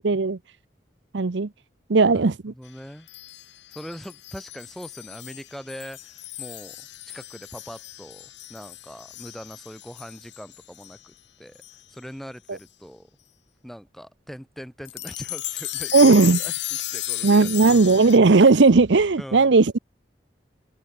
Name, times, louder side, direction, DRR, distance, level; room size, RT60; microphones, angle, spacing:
voice 1, 0.0-0.4 1.1-1.5 1.9-2.5 12.5-12.6 15.9-16.4 17.2-19.8, right 3 dB, 85° right, 0.7 m, -16 dB
voice 2, 2.1-3.1 3.7-11.6 11.9-13.1 13.6-17.8 19.2-19.6, equal, ahead, 4.7 m, -41 dB
sound 1, 3.1-11.0 11.6-11.8 12.6-12.7 14.8-18.2, left 14 dB, 85° left, 7.1 m, -35 dB
head